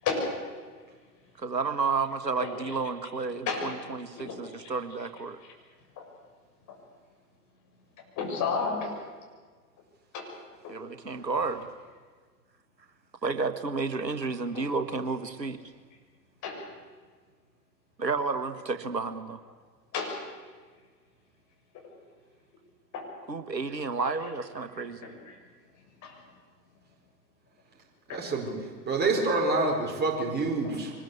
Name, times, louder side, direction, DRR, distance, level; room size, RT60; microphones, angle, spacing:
voice 1, 0.0-0.4 2.4-2.7 3.4-3.7 4.2-4.7 6.0-6.1 8.2-9.0 10.1-10.3 10.6-10.7 14.5-14.6 16.4-16.7 19.9-20.2 22.9-23.1 25.0-25.3 26.0-26.2 28.1-28.3 30.4-30.5, left 5 dB, 35° left, 1 dB, 7.2 m, -32 dB
voice 2, 1.4-5.4 10.7-11.7 13.2-15.6 18.0-19.4 23.3-25.1, right 4 dB, 85° right, 10 dB, 1.7 m, -31 dB
voice 3, 28.1-28.5 28.8-30.9, right 3 dB, 20° right, -1 dB, 5.0 m, -27 dB
24.0 x 20.5 x 8.3 m, 1.5 s
figure-of-eight pair, 95°, 49 cm